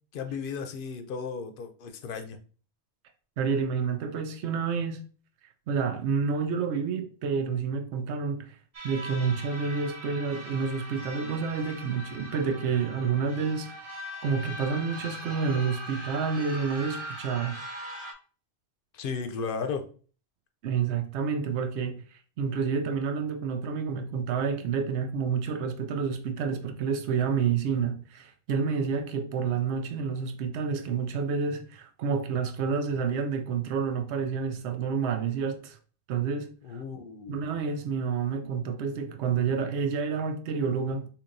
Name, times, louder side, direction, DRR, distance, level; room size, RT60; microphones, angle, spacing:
voice 1, 0.1-2.4 18.9-19.9 36.6-37.6, left 5 dB, 60° left, 0.7 m, -35 dB
voice 2, 3.4-5.0 5.7-8.6 8.8-13.7 14.2-17.6 20.6-22.0 22.4-35.8 36.1-36.5 37.3-41.1, right 5 dB, 80° right, 0.9 m, -29 dB
sound 1, 8.7-18.1, equal, 30° right, 0.6 m, -41 dB
4.6 x 2.9 x 2.5 m
omnidirectional pair, 1.1 m